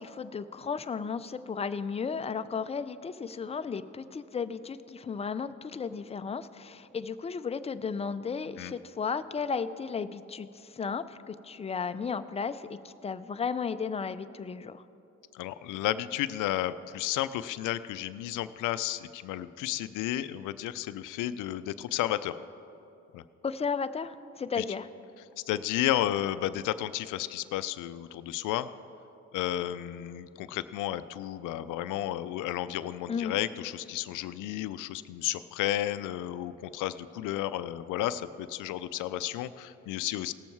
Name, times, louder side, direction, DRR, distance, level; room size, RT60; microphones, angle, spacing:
voice 1, 0.0-14.8 23.4-24.9 33.1-33.4, left 5 dB, 20° left, 11 dB, 0.4 m, -34 dB
voice 2, 15.3-22.4 23.1-23.2 24.6-24.7 25.5-28.7 29.3-40.3, left 13 dB, 85° left, 13 dB, 0.5 m, -32 dB
18.0 x 7.1 x 4.5 m, 2.8 s
cardioid pair, 90°, 30 cm